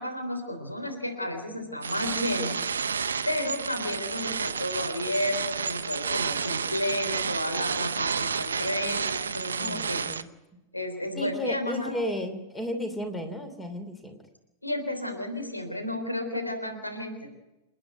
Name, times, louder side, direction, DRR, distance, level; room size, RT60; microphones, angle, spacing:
voice 1, 0.0-2.6 2.9-10.1 10.7-11.9 14.6-17.3, left 1 dB, 85° left, 5 dB, 3.5 m, -32 dB
sound 1, 1.8-10.2, right 6 dB, 70° right, 0.8 m, -31 dB
voice 2, 9.6-10.3 11.1-14.2, equal, 10° left, 7 dB, 2.9 m, -33 dB
29.0 x 10.0 x 9.4 m, 0.98 s
figure-of-eight pair, 90°, 0 cm